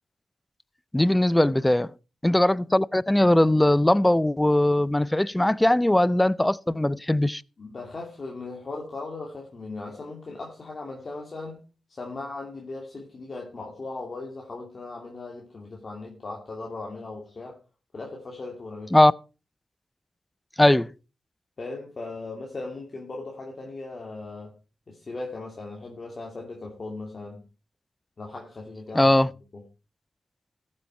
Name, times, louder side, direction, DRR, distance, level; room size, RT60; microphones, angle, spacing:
voice 1, 0.9-1.9 2.2-7.4 18.9-19.1 20.6-20.9 28.9-29.3, left 1 dB, 10° left, 0.4 m, -20 dB
voice 2, 7.6-11.6 11.9-17.6 17.9-19.0 21.6-24.5 24.9-27.4 28.2-29.1 29.5-29.6, left 3 dB, 45° left, 2.7 m, -38 dB
14.5 x 7.6 x 4.4 m
cardioid pair, 65°, 0 cm